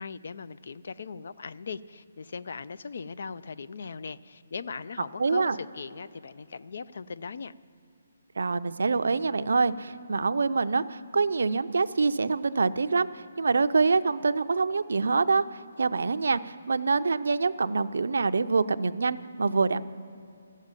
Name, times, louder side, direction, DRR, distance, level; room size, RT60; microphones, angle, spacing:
voice 1, 0.0-7.5, left 5 dB, 55° left, 16 dB, 0.4 m, -39 dB
voice 2, 5.2-5.6 8.4-19.8, right 4 dB, 75° right, 12 dB, 0.5 m, -25 dB
14.5 x 7.4 x 9.0 m, 2.7 s
hypercardioid pair, 175°, 0 cm